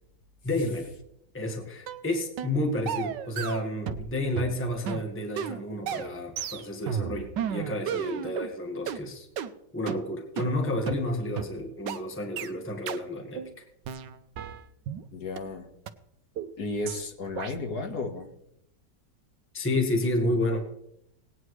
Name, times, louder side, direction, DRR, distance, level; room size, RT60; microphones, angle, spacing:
voice 1, 0.4-0.9 1.3-9.3 9.7-13.4 19.5-20.6, left 1 dB, 10° left, 2 dB, 1.3 m, -30 dB
sound 1, 1.9-2.0 2.4-2.6 2.9-4.1 4.4-8.5 8.9-9.0 9.4-9.5 9.9-10.0 10.4-10.5 10.9-11.0 11.4-11.5 11.9-12.0 12.4-12.5 12.9-13.0 13.4-13.5 13.9-15.0 15.4-15.5 15.9-16.0 16.4-16.5 16.9-17.0 17.4-17.5, right 8 dB, 80° right, 1.3 m, -33 dB
voice 2, 15.1-15.7 16.6-18.3, left 3 dB, 65° left, 5 dB, 1.9 m, -33 dB
18.5 x 9.5 x 3.2 m, 0.76 s
omnidirectional pair, 1.9 m